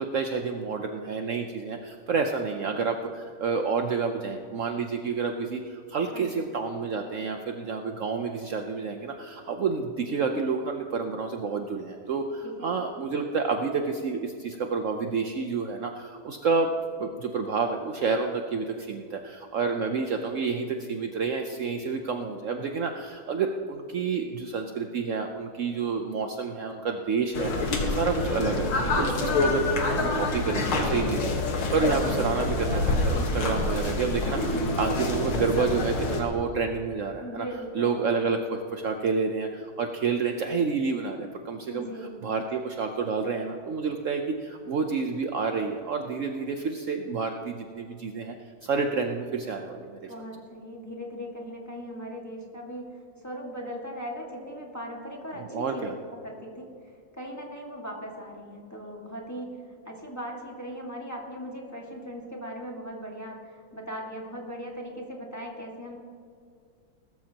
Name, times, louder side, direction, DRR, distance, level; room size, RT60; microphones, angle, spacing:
voice 1, 0.0-16.7 17.0-27.5 27.9-37.5 37.7-41.9 42.2-48.3 48.6-50.1 55.4-55.9, right 5 dB, 80° right, 4 dB, 0.7 m, -29 dB
voice 2, 27.2-27.5 32.2-33.0 34.5-34.7 37.2-38.2 41.7-42.2 50.1-66.0, equal, 10° left, -2 dB, 1.6 m, -39 dB
sound 1, 27.3-36.2, left 2 dB, 90° left, 2.3 m, -27 dB
20.0 x 13.5 x 2.9 m, 2.2 s
omnidirectional pair, 2.2 m